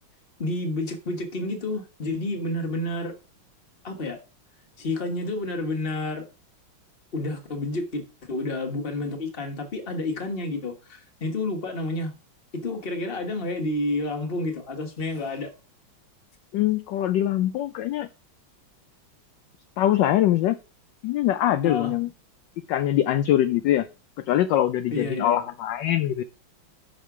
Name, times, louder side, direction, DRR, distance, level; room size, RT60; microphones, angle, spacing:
voice 1, 0.4-3.1 3.8-4.2 4.8-6.3 7.1-12.1 12.5-15.5 21.6-21.9 24.9-25.5, left 2 dB, 30° left, 1.4 m, -30 dB
voice 2, 16.5-18.1 19.8-20.6 21.0-22.1 22.7-23.9 24.3-26.2, left 12 dB, 75° left, 1.1 m, -23 dB
6.5 x 6.4 x 4.8 m
omnidirectional pair, 2.3 m